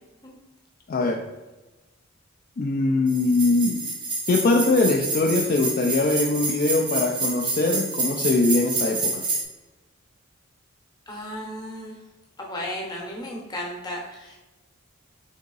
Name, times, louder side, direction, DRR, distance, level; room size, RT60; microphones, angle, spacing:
voice 1, 0.9-1.2 2.6-3.8 4.3-9.3, left 2 dB, 40° left, 0 dB, 0.3 m, -22 dB
sound 1, 3.1-9.4, right 3 dB, 20° right, 0.6 m, -28 dB
voice 2, 11.1-12.0 12.4-14.4, left 1 dB, 20° left, -1 dB, 0.8 m, -34 dB
3.7 x 3.5 x 3.9 m, 1.1 s
head